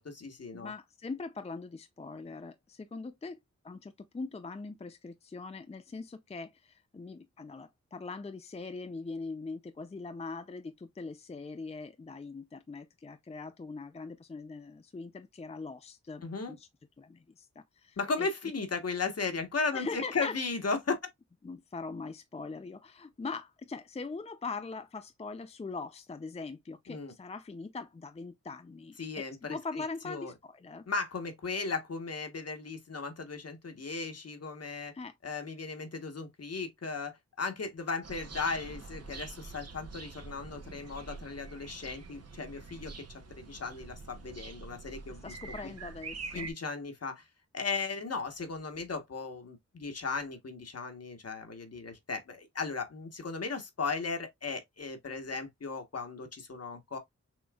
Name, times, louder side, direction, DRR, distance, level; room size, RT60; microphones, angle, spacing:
voice 1, 0.0-0.7 16.2-16.5 18.0-21.0 26.9-27.1 29.0-30.3 30.9-34.9 35.2-42.9 43.4-45.3 45.6-45.7 46.3-47.3 47.5-57.0, left 4 dB, 55° left, 1.3 m, -36 dB
voice 2, 0.5-3.4 3.6-16.7 17.0-18.3 19.7-20.4 21.4-30.9 34.9-35.1 45.2-46.5, left 4 dB, 20° left, 0.5 m, -42 dB
sound 1, 38.0-46.5, right 4 dB, 60° right, 1.0 m, -45 dB
6.3 x 3.1 x 2.3 m
wide cardioid pair, 90°, 29 cm